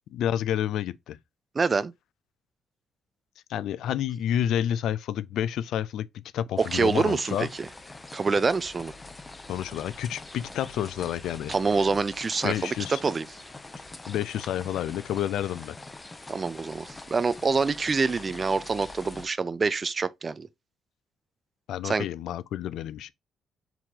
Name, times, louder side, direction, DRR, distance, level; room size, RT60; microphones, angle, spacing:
voice 1, 0.1-1.2 3.5-7.5 9.5-11.5 12.4-13.0 14.1-15.8 21.7-23.1, left 10 dB, 80° left, 0.4 m, -29 dB
voice 2, 1.5-1.9 6.6-7.7 8.1-8.9 11.5-12.7 13.0-13.3 16.3-20.5 21.8-22.1, right 4 dB, 35° right, 0.4 m, -26 dB
sound 1, 6.6-19.3, left 2 dB, 20° left, 0.7 m, -44 dB
4.7 x 3.8 x 2.7 m
cardioid pair, 90°, 0 cm